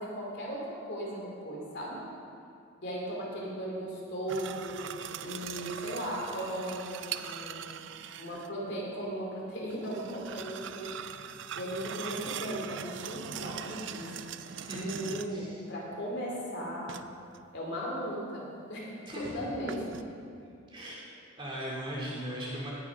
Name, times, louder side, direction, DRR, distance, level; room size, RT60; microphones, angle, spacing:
voice 1, 0.0-2.1 2.8-4.8 5.2-7.9 8.2-10.9 11.5-14.4 14.7-16.9 17.5-19.8, equal, 55° left, -4 dB, 2.7 m, -37 dB
sound 1, 4.3-8.5 9.7-15.5 16.9-17.5 19.7-20.0, right 8 dB, 60° right, 0.4 m, -41 dB
voice 2, 14.6-15.6 19.1-19.7 20.7-21.0 21.4-22.7, equal, 25° right, -5 dB, 2.3 m, -38 dB
17.5 x 6.1 x 5.1 m, 2.4 s
head